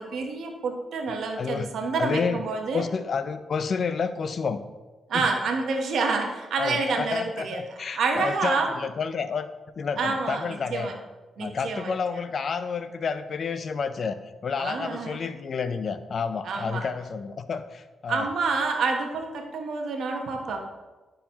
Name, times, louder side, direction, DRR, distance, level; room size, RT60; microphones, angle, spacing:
voice 1, 0.0-2.8 5.1-8.7 10.0-10.9 11.4-11.9 14.6-15.2 16.4-16.9 18.1-20.6, right 4 dB, 75° right, 3 dB, 0.9 m, -28 dB
voice 2, 1.4-1.7 2.0-2.4 2.7-4.6 5.1-5.2 6.6-9.5 9.8-10.9 11.4-14.2 14.4-18.3, left 5 dB, 60° left, 12 dB, 0.5 m, -30 dB
10.0 x 4.0 x 2.9 m, 1.2 s
cardioid pair, 65°, 0 cm